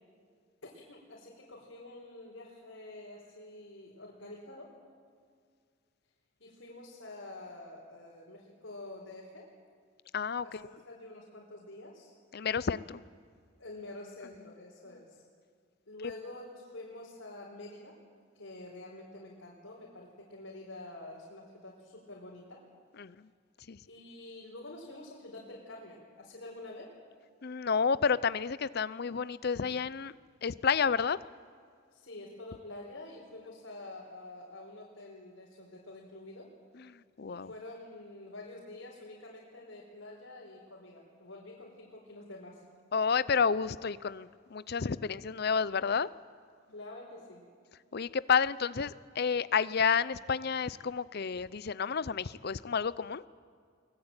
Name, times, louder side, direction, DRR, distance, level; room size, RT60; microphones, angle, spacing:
voice 1, 0.7-4.7 6.4-9.5 10.4-12.1 13.6-15.2 15.9-17.9 18.3-22.6 23.9-26.9 31.9-36.5 37.3-42.6 46.7-47.4, left 2 dB, 85° left, -4 dB, 4.3 m, -47 dB
voice 2, 10.1-10.6 12.3-13.0 23.0-23.3 23.7-23.8 27.4-30.1 30.4-31.2 36.7-37.5 42.9-46.1 47.9-53.2, left 6 dB, 55° left, 17 dB, 0.6 m, -30 dB
23.0 x 20.0 x 8.9 m, 2.1 s
head